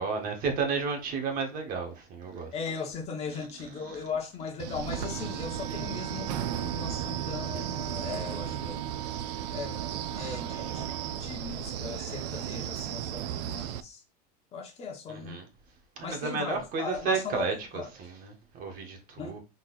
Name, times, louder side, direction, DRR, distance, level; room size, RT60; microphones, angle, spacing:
voice 1, 0.0-2.5 3.8-4.0 15.1-15.5 16.0-19.4, right 5 dB, 45° right, 1.4 m, -32 dB
voice 2, 2.5-8.8 9.5-9.8 10.1-14.0 14.5-15.4 16.0-17.9 19.2-19.4, left 5 dB, 30° left, 1.0 m, -38 dB
Wind, 4.6-13.8, right 10 dB, 85° right, 0.5 m, -35 dB
Wind instrument woodwind instrument, 4.9-11.3, right 14 dB, 25° right, 0.5 m, -42 dB
4.1 x 2.9 x 4.0 m
supercardioid pair, 145°, 20 cm